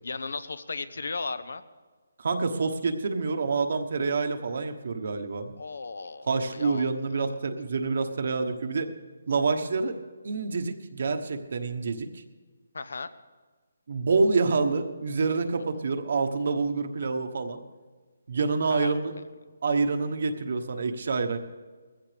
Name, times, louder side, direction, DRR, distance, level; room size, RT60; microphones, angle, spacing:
voice 1, 0.0-1.6 5.6-7.3 12.7-13.1 15.6-15.7 18.7-18.9, left 4 dB, 75° left, 13 dB, 0.9 m, -36 dB
voice 2, 2.2-5.5 6.3-8.9 9.3-10.0 10.2-12.2 13.9-17.6 18.3-19.1 19.6-21.4, right 4 dB, 60° right, 7 dB, 1.2 m, -27 dB
20.5 x 15.5 x 3.4 m, 1.4 s
hypercardioid pair, 165°, 0 cm